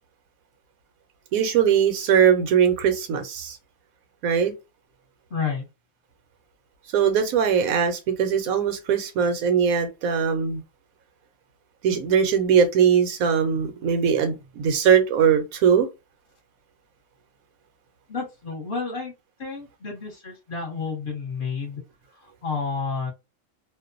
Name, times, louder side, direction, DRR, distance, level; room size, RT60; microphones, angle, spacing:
voice 1, 1.3-3.6 4.2-4.5 6.9-10.6 11.8-15.9, right 7 dB, 85° right, 1.1 m, -20 dB
voice 2, 5.3-5.7 18.1-19.1 19.4-21.8 22.1-23.1, left 5 dB, 45° left, 0.9 m, -30 dB
2.5 x 2.1 x 2.4 m
omnidirectional pair, 1.4 m